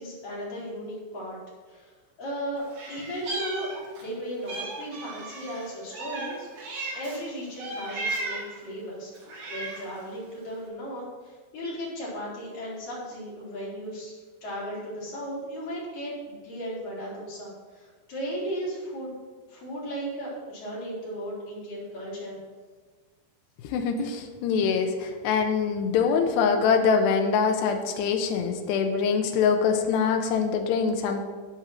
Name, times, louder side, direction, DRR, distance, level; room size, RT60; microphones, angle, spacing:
voice 1, 0.0-1.4 1.7-2.6 2.9-3.7 4.0-6.5 6.9-14.1 14.4-19.1 19.5-22.4, equal, 45° left, -7 dB, 5.4 m, -36 dB
Meow, 2.7-4.1 4.5-7.2 7.6-8.6 9.1-10.0, right 2 dB, 50° right, 2.7 m, -35 dB
voice 2, 23.6-31.2, left 6 dB, 80° left, 4 dB, 2.6 m, -24 dB
14.5 x 5.4 x 6.2 m, 1.4 s
omnidirectional pair, 5.7 m